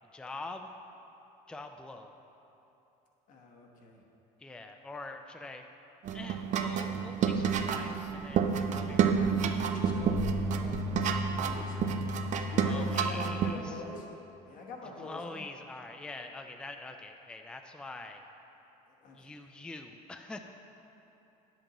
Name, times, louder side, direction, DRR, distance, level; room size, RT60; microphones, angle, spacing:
voice 1, 0.1-0.7 1.5-2.1 4.4-5.7 6.1-9.4 12.5-13.8 15.0-18.2 19.1-20.5, left 2 dB, 5° left, 5 dB, 0.4 m, -44 dB
voice 2, 3.3-4.0 9.4-11.8 12.5-14.1 14.4-15.5 19.0-19.3, left 2 dB, 55° left, 0 dB, 1.2 m, -44 dB
sound 1, 6.0-13.5, right 5 dB, 50° right, 0.5 m, -29 dB
9.6 x 7.8 x 3.0 m, 3.0 s
cardioid pair, 110°, 16 cm